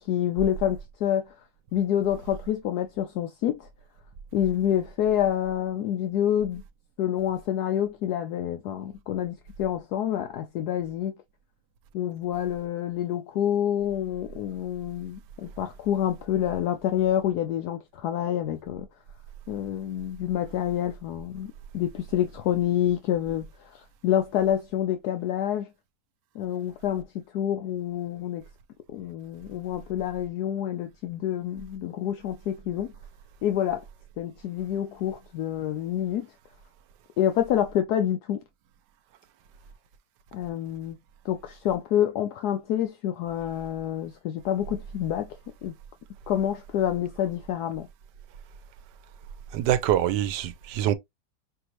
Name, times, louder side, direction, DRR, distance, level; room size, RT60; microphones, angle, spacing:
voice 1, 0.0-1.3 1.7-3.7 4.3-6.6 7.0-11.1 11.9-18.9 19.5-25.7 26.3-28.4 28.9-32.9 33.4-33.8 34.2-36.3 37.2-38.4 40.3-41.0 41.2-45.3 45.6-45.7 46.3-47.9, left 10 dB, 75° left, 1.1 m, -27 dB
voice 2, 49.5-50.9, right 11 dB, 85° right, 1.2 m, -24 dB
5.9 x 2.7 x 3.0 m
omnidirectional pair, 1.8 m